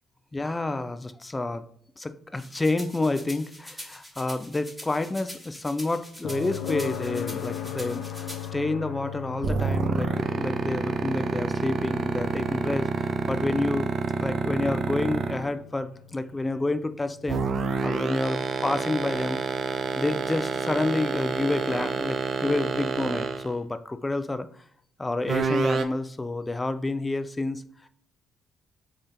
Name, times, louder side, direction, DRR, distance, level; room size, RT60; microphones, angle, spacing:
voice 1, 0.3-1.6 2.0-13.9 14.2-19.4 19.7-24.5 25.0-27.6, left 2 dB, 20° left, 11 dB, 0.3 m, -29 dB
sound 1, 2.3-8.5, equal, 5° right, 1.3 m, -44 dB
sound 2, 6.2-20.1 22.3-22.4, left 10 dB, 85° left, 0.5 m, -39 dB
sound 3, 9.4-15.5 17.3-23.5 25.3-25.8, right 5 dB, 55° right, 0.4 m, -27 dB
3.7 x 2.7 x 3.2 m, 0.64 s
cardioid pair, 90°, 0 cm